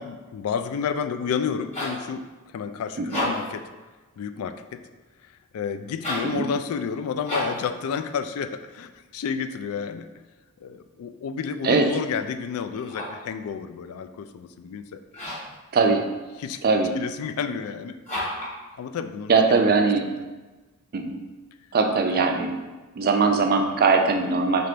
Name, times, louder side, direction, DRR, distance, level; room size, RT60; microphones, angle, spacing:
voice 1, 0.0-2.3 2.5-3.6 4.2-4.8 5.2-10.1 10.6-15.0 16.4-16.6 16.9-18.0 18.7-19.8 22.1-22.3, left 6 dB, 70° left, 10 dB, 0.3 m, -31 dB
sound 1, 1.5-2.1 3.0-3.6 5.9-6.4 7.2-7.7 12.7-13.3 15.1-15.6 18.0-18.6, left 1 dB, 30° left, 1.5 m, -31 dB
voice 2, 15.7-16.1 16.6-16.9 19.3-20.1 20.9-21.2 21.7-22.6 22.9-24.7, right 4 dB, 45° right, 4 dB, 0.4 m, -21 dB
3.5 x 3.2 x 3.8 m, 1.2 s
head